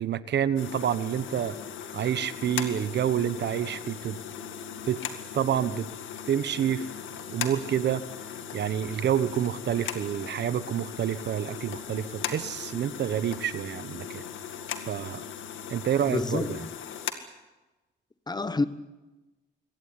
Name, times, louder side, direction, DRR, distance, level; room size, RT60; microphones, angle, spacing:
voice 1, 0.0-1.6 1.9-4.2 4.9-5.0 5.3-5.9 6.3-6.9 7.3-8.0 8.5-14.3 14.9-15.2 15.7-16.6, right 9 dB, 60° right, 1.1 m, -28 dB
sound 1, 0.6-17.1, left 9 dB, 75° left, 2.1 m, -38 dB
Mechanical fan, 1.1-16.5, right 6 dB, 90° right, 2.7 m, -54 dB
voice 2, 16.1-16.8 18.3-18.6, left 3 dB, 20° left, 1.2 m, -28 dB
23.0 x 17.5 x 9.8 m
cardioid pair, 90°, 20 cm